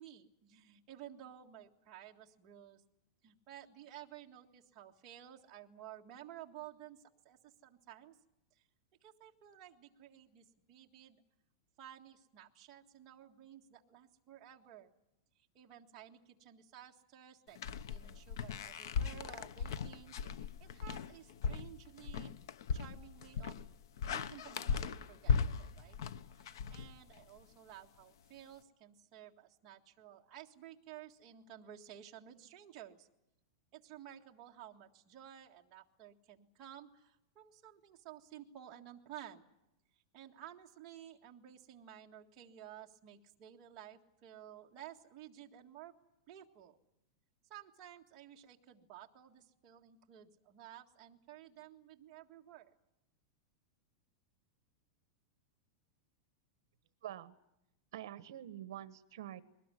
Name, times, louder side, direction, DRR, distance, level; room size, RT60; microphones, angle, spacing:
voice 1, 0.0-2.8 3.2-7.0 7.2-8.2 9.0-11.2 11.8-14.9 15.5-17.6 17.9-22.3 22.7-23.6 24.1-26.0 26.4-33.1 33.7-39.5 40.1-45.9 46.3-46.8 47.5-52.7, right 11 dB, 25° right, 0 dB, 1.8 m, -54 dB
sound 1, 17.6-27.4, left 6 dB, 70° left, 1.1 m, -37 dB
voice 2, 57.0-57.3 57.9-59.4, right 12 dB, 65° right, 14 dB, 1.2 m, -46 dB
21.5 x 19.5 x 9.9 m, 0.85 s
supercardioid pair, 170°, 2 cm